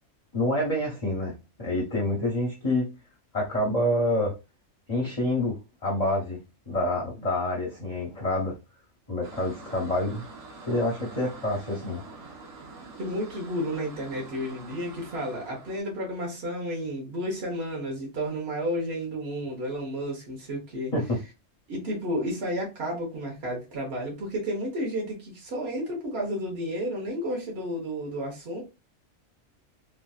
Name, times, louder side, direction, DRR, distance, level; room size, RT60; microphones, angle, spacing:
voice 1, 0.3-2.9 3.3-4.3 4.9-6.4 6.7-8.5 9.1-10.2 10.6-12.0 20.9-21.2, left 1 dB, 35° left, 0.9 m, -27 dB
sound 1, 9.2-15.8, right 3 dB, 85° right, 1.3 m, -45 dB
voice 2, 13.0-20.9 21.7-28.6, equal, 55° right, 1.4 m, -32 dB
3.2 x 2.5 x 2.3 m
omnidirectional pair, 1.3 m